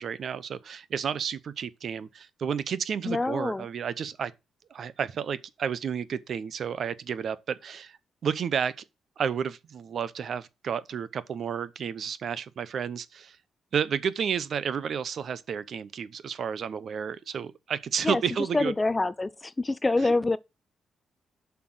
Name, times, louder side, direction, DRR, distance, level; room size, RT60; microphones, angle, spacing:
voice 1, 0.0-4.3 4.7-8.0 8.2-8.7 9.2-13.4 13.7-18.7 20.0-20.1, right 7 dB, 50° right, 0.7 m, -31 dB
voice 2, 3.1-3.6 18.0-18.2 18.5-20.4, left 2 dB, 15° left, 0.4 m, -26 dB
7.7 x 5.9 x 6.1 m
wide cardioid pair, 155°, 0 cm